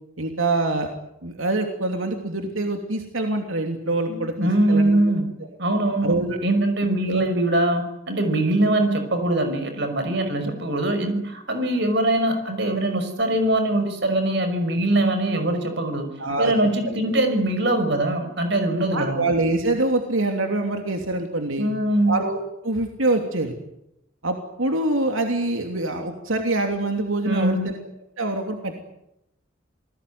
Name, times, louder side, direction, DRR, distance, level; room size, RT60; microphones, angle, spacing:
voice 1, 0.2-0.9 1.2-5.0 6.0-6.4 7.1-7.3 16.2-16.5 16.8-17.0 18.9-21.7 22.1-22.4 22.6-23.5 24.2-27.8 28.2-28.8, right 2 dB, 85° right, 4 dB, 3.0 m, -25 dB
voice 2, 4.1-5.3 5.6-6.2 6.4-16.1 16.4-19.3 21.6-22.1 27.2-27.7, right 1 dB, 55° right, 8 dB, 5.7 m, -22 dB
28.0 x 20.0 x 9.5 m, 0.84 s
head